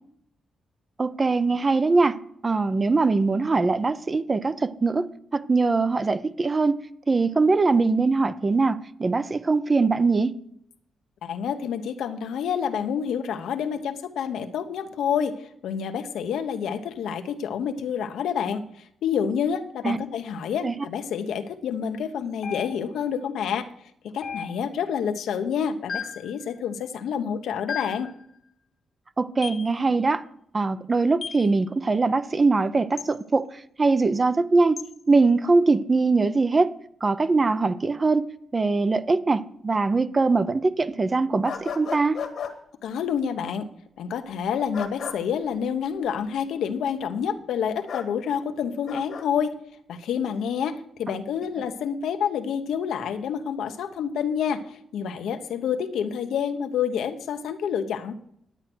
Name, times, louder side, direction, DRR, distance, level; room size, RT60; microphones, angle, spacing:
voice 1, 1.0-2.2 2.4-6.8 7.1-10.3 19.8-20.0 20.6-20.7 29.2-30.2 30.5-34.8 35.1-36.7 37.0-38.3 38.5-42.2, right 3 dB, 20° right, 0.5 m, -22 dB
voice 2, 11.2-18.6 19.0-23.7 24.0-28.1 42.8-43.7 44.0-49.5 49.9-58.1, left 7 dB, 85° left, 1.0 m, -28 dB
sound 1, 22.4-23.1 24.2-24.9 25.9-26.3 27.7-28.1 29.4-29.7 31.2-31.5 33.0-33.2 34.8-34.9, left 6 dB, 40° left, 0.5 m, -35 dB
sound 2, 41.4-42.5 44.7-45.2 47.9-48.1 48.9-49.3, left 7 dB, 60° left, 1.5 m, -33 dB
10.5 x 9.0 x 6.2 m
wide cardioid pair, 170°, 0 cm